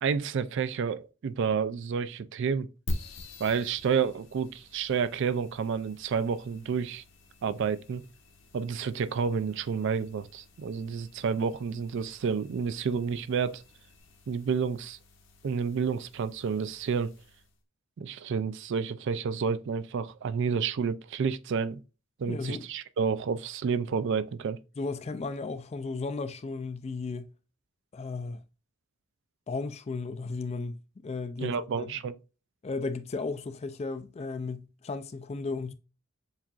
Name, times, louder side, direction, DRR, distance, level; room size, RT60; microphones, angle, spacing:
voice 1, 0.0-2.7 3.4-7.0 7.4-8.0 8.5-13.6 14.3-15.0 15.4-17.1 18.0-21.8 22.2-24.6 31.4-32.2, right 6 dB, 55° right, 0.3 m, -30 dB
sound 1, 2.9-17.6, left 1 dB, 55° left, 1.0 m, -45 dB
voice 2, 22.3-22.7 24.8-27.3 27.9-28.4 29.5-30.8 31.0-31.9 32.6-35.7, left 3 dB, 30° left, 0.3 m, -35 dB
7.2 x 2.5 x 2.4 m
head